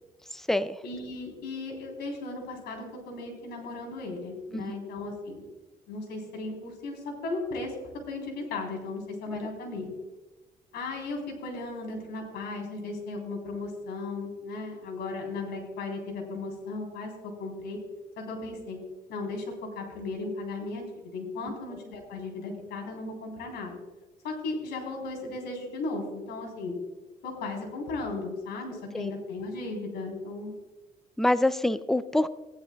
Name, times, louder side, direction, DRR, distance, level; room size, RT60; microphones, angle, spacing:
voice 1, 0.3-0.8 4.5-4.7 9.3-9.4 21.5-21.6 28.9-29.1 31.2-32.3, left 1 dB, ahead, 14 dB, 0.4 m, -26 dB
voice 2, 0.8-5.4 5.9-7.7 8.1-9.9 10.7-17.8 18.2-18.8 19.1-23.8 24.2-26.7 27.2-30.5, left 3 dB, 80° left, 1 dB, 3.7 m, -36 dB
17.0 x 11.0 x 2.3 m, 1.2 s
cardioid pair, 110°, 17 cm